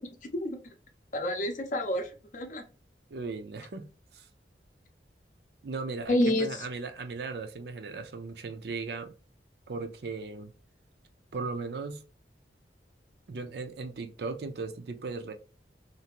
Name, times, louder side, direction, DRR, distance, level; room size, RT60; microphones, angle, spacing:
voice 1, 1.1-2.6 6.1-6.5, left 1 dB, 45° left, 0.5 m, -28 dB
voice 2, 3.1-3.9 4.1-4.3 5.6-9.1 9.7-10.5 11.3-12.0 13.3-15.3, right 4 dB, 65° right, 0.5 m, -37 dB
2.7 x 2.5 x 2.8 m
head